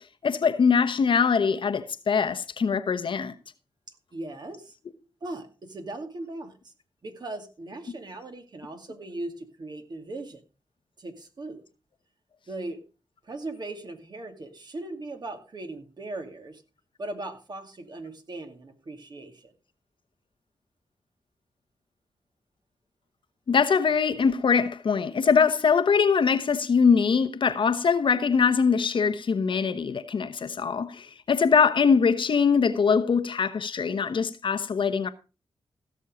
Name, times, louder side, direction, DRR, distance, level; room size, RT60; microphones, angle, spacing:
voice 1, 0.2-3.3 23.5-35.1, left 6 dB, 60° left, 1.1 m, -22 dB
voice 2, 3.9-4.7 5.2-6.7 7.0-10.4 11.0-11.6 12.5-12.8 13.2-16.6 17.0-19.5, right 2 dB, 50° right, 2.4 m, -38 dB
16.0 x 6.4 x 5.0 m
cardioid pair, 75°, 9 cm